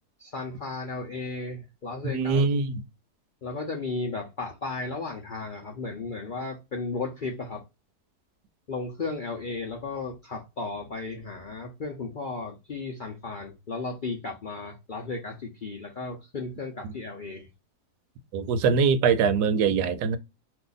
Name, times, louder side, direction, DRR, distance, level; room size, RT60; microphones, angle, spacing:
voice 1, 0.2-2.4 3.4-7.6 8.7-17.5, left 3 dB, 65° left, 0.4 m, -35 dB
voice 2, 2.1-2.8 18.3-20.2, right 5 dB, 85° right, 1.1 m, -23 dB
2.7 x 2.4 x 3.8 m
omnidirectional pair, 1.7 m